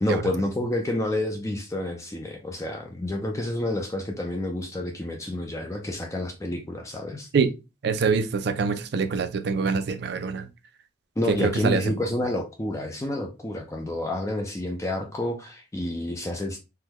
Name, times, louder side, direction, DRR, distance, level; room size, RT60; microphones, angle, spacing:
voice 1, 0.0-7.3 11.2-16.6, left 1 dB, 15° left, 0.4 m, -29 dB
voice 2, 7.8-10.5 11.3-11.9, right 5 dB, 55° right, 0.4 m, -25 dB
3.4 x 2.2 x 2.9 m
head